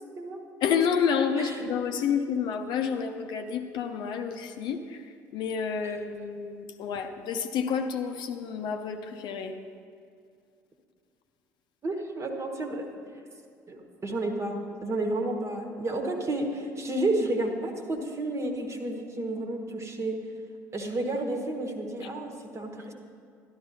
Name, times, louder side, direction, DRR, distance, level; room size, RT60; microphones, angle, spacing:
voice 1, 0.6-9.5 22.0-22.1, left 6 dB, 50° left, 6 dB, 0.7 m, -29 dB
voice 2, 11.8-12.9 13.7-20.2 20.7-22.9, right 2 dB, 30° right, 3 dB, 1.4 m, -31 dB
12.5 x 11.5 x 2.7 m, 2.3 s
figure-of-eight pair, 55°, 10 cm